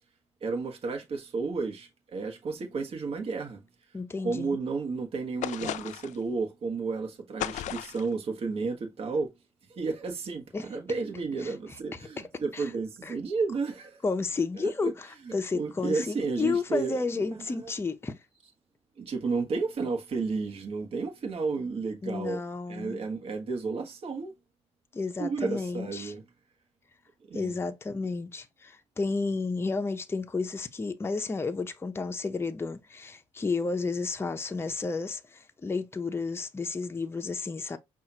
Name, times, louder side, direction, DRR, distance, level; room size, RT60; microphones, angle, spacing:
voice 1, 0.4-3.6 4.2-9.3 9.7-14.0 14.6-14.9 15.2-17.0 17.3-17.7 19.0-22.4 22.7-24.3 25.2-26.2 27.3-27.5, right 4 dB, 45° right, 1.2 m, -32 dB
voice 2, 3.9-4.6 10.5-10.7 11.4-11.5 11.9-12.0 12.5-12.7 13.0-13.2 14.0-14.9 15.3-18.2 22.0-23.0 24.9-26.1 27.3-37.8, left 4 dB, 20° left, 0.6 m, -32 dB
sound 1, 5.4-6.2 7.4-8.1, left 12 dB, 60° left, 0.4 m, -35 dB
5.5 x 2.4 x 2.8 m
supercardioid pair, 70°, 14 cm